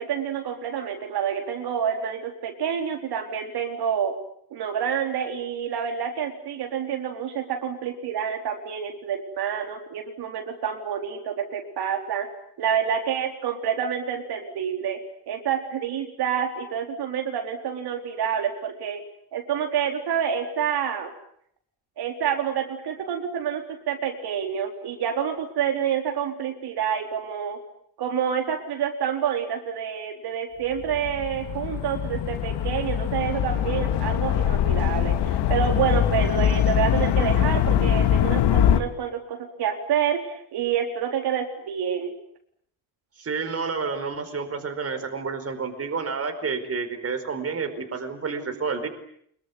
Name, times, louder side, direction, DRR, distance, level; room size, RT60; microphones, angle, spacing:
voice 1, 0.0-4.1 4.5-12.3 12.6-19.0 19.3-21.1 22.0-27.6 28.0-42.1, right 8 dB, 70° right, 3 dB, 4.2 m, -28 dB
sound 1, 30.8-38.8, left 10 dB, 80° left, 2.1 m, -23 dB
voice 2, 43.2-48.9, right 5 dB, 35° right, 7 dB, 4.8 m, -29 dB
25.0 x 23.0 x 9.5 m, 0.68 s
cardioid pair, 125°, 40 cm